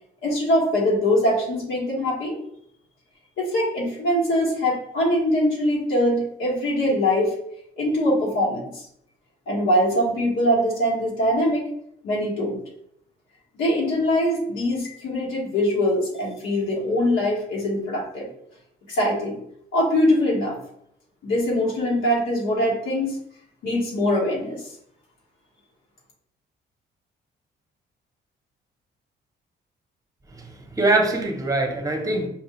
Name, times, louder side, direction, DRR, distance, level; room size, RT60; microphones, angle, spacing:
voice 1, 0.2-2.4 3.4-7.4 7.8-8.8 9.5-11.7 12.0-12.6 13.6-18.3 18.9-19.4 19.7-20.6 21.2-23.2 23.6-24.6, left 1 dB, 85° left, -4 dB, 1.5 m, -22 dB
voice 2, 30.3-32.3, right 2 dB, 15° right, 3 dB, 0.9 m, -23 dB
5.4 x 2.4 x 3.0 m, 0.71 s
cardioid pair, 90°, 20 cm